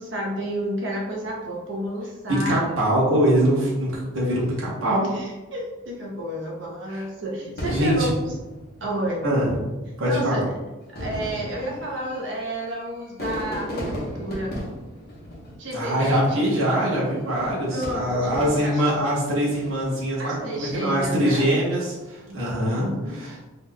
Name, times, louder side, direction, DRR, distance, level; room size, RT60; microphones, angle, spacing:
voice 1, 0.0-2.8 5.1-8.3 8.8-9.2 10.0-10.5 10.9-14.6 15.6-16.5 17.7-18.8 20.2-21.5 22.3-23.2, right 1 dB, 60° right, -2 dB, 0.8 m, -31 dB
voice 2, 2.3-5.1 6.9-7.0 7.7-8.1 9.2-9.5 10.0-10.4 15.7-23.5, equal, 80° right, -5 dB, 0.9 m, -23 dB
Fireworks, 7.6-9.2 10.0-10.1 10.8-16.1 17.2-18.9 19.5-20.0, equal, 50° left, 1.0 m, -35 dB
3.9 x 3.0 x 2.2 m, 1.1 s
head